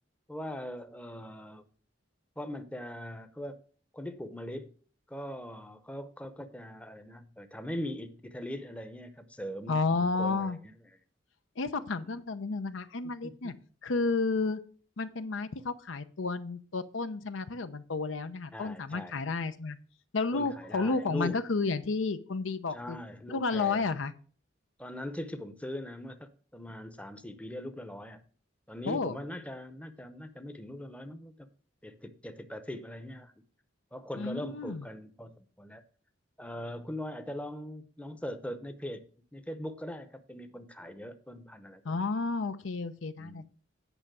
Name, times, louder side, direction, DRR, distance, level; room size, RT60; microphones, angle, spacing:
voice 1, 0.3-1.6 2.4-3.6 3.9-4.7 5.1-11.0 12.0-12.2 13.0-13.6 18.5-19.2 20.3-21.4 22.7-23.9 24.8-28.2 28.7-31.5 31.8-33.3 33.9-35.8 36.4-42.0 43.2-43.5, left 1 dB, 5° left, 8 dB, 0.7 m, -41 dB
voice 2, 9.7-10.6 11.6-13.5 13.8-14.6 15.0-19.8 20.1-23.0 23.3-24.1 28.9-29.2 34.2-34.8 41.8-43.5, left 3 dB, 85° left, 11 dB, 0.7 m, -31 dB
9.0 x 5.4 x 6.1 m, 0.43 s
head